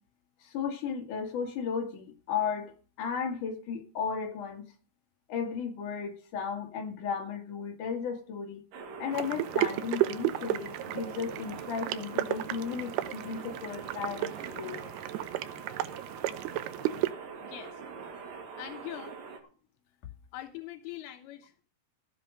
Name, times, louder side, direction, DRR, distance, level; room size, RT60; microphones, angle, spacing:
voice 1, 0.4-4.6 5.3-8.6 9.0-14.8, left 6 dB, 55° left, 3.4 m, -35 dB
sound 1, 8.7-19.4, right 5 dB, 60° right, 3.9 m, -44 dB
sound 2, 9.1-17.1, right 14 dB, 90° right, 2.8 m, -33 dB
voice 2, 17.4-17.8 18.6-19.2 20.3-21.6, left 13 dB, 85° left, 2.9 m, -42 dB
15.0 x 7.9 x 6.5 m
omnidirectional pair, 4.4 m